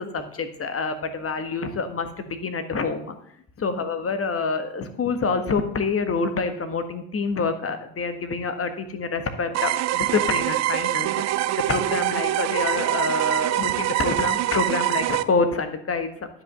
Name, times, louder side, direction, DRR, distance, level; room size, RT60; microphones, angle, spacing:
voice 1, 0.0-3.2 3.6-16.3, left 4 dB, 25° left, 8 dB, 1.5 m, -27 dB
sound 1, 9.5-15.2, right 14 dB, 35° right, 0.5 m, -24 dB
10.0 x 5.5 x 6.8 m, 0.69 s
hypercardioid pair, 65°, 49 cm